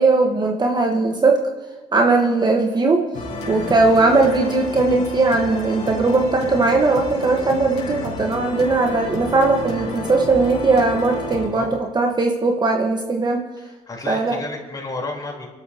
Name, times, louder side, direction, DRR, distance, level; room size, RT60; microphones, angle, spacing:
voice 1, 0.0-1.5 1.9-3.1 3.5-11.7 11.9-13.4 14.1-14.4, right 3 dB, 30° right, 2 dB, 1.6 m, -18 dB
Grey Sky Piece, 3.1-11.5, left 2 dB, 55° left, 4.0 m, -31 dB
voice 2, 13.6-15.5, left 2 dB, 30° left, -1 dB, 4.4 m, -31 dB
25.5 x 12.0 x 3.1 m, 1.2 s
supercardioid pair, 75°, 14 cm